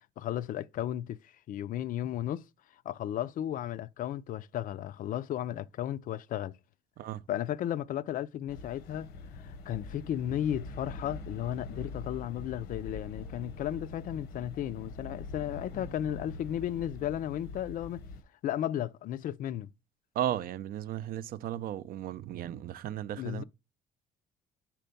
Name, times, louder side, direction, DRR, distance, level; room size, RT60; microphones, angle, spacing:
voice 1, 0.2-2.4 2.9-6.6 7.3-9.1 9.4-18.0 18.4-19.7 23.1-23.4, left 11 dB, 55° left, 0.4 m, -34 dB
sound 1, 8.5-18.2, left 3 dB, 80° left, 0.8 m, -44 dB
voice 2, 20.1-23.4, right 11 dB, 60° right, 0.4 m, -35 dB
4.5 x 4.2 x 5.3 m
cardioid pair, 110°, 17 cm